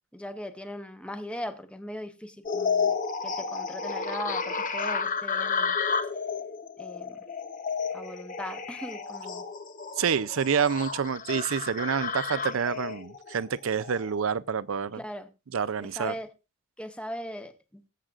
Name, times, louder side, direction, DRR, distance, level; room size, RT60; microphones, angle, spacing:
voice 1, 0.1-2.9 3.2-5.8 6.8-7.2 7.9-9.4 15.0-15.3 15.8-16.3 16.8-17.8, left 1 dB, 5° left, 1.0 m, -39 dB
sound 1, 2.5-14.2, left 5 dB, 40° left, 0.9 m, -32 dB
voice 2, 10.0-15.0 15.5-16.1, right 7 dB, 70° right, 0.5 m, -28 dB
22.5 x 7.6 x 2.5 m
head